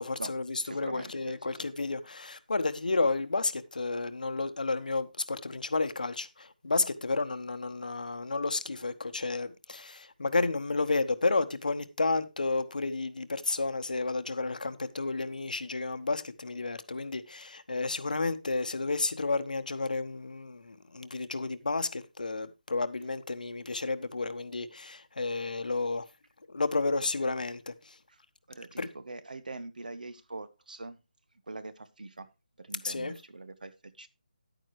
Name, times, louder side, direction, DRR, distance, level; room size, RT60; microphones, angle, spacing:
voice 1, 0.0-26.1 26.5-28.0 28.8-28.9 32.8-33.1, left 3 dB, 60° left, 1.1 m, -31 dB
voice 2, 0.6-1.7 28.1-28.2 28.5-31.0 31.5-32.3 32.6-34.1, right 2 dB, 65° right, 1.1 m, -43 dB
10.5 x 9.1 x 3.1 m
figure-of-eight pair, 180°, 5 cm